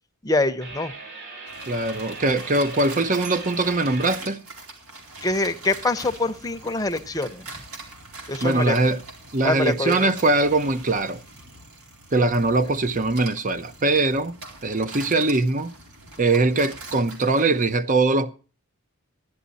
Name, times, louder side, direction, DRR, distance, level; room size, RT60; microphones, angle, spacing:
voice 1, 0.2-0.9 5.2-7.5 8.3-8.8 9.4-10.1, left 2 dB, 15° left, 0.8 m, -25 dB
sound 1, 0.6-4.2, right 3 dB, 55° right, 7.2 m, -40 dB
sound 2, 1.5-17.8, right 2 dB, 80° right, 4.3 m, -42 dB
voice 2, 1.7-4.5 8.4-9.0 9.3-11.2 12.1-14.4 14.6-15.7 16.2-18.3, right 2 dB, 35° right, 0.8 m, -22 dB
15.5 x 11.5 x 4.1 m
head